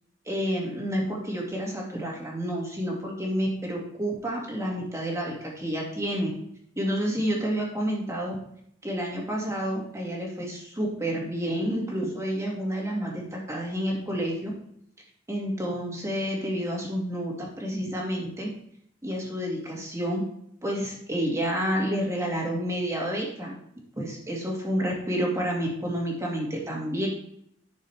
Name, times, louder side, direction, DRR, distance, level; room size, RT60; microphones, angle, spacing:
voice 1, 0.3-6.3 6.8-8.3 8.8-14.5 15.3-18.5 19.0-20.2 20.6-23.5 24.0-27.1, equal, 15° right, -2 dB, 2.2 m, -29 dB
10.5 x 6.5 x 3.5 m, 0.71 s
head